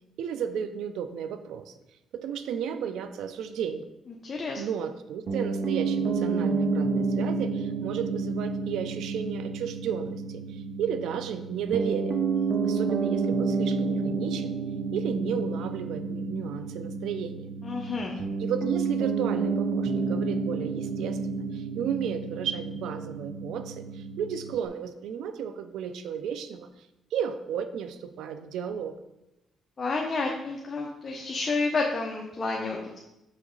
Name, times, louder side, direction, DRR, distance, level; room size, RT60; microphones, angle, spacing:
voice 1, 0.2-1.7 2.1-3.9 4.6-12.2 12.6-14.6 14.9-17.5 18.4-29.0, right 8 dB, 85° right, 10 dB, 0.6 m, -33 dB
voice 2, 4.2-4.6 17.6-18.1 29.8-33.0, left 3 dB, 35° left, 0 dB, 1.0 m, -30 dB
Piano, 5.3-24.7, right 4 dB, 60° right, 0.9 m, -30 dB
6.6 x 6.1 x 3.9 m, 0.91 s
cardioid pair, 90°, 0 cm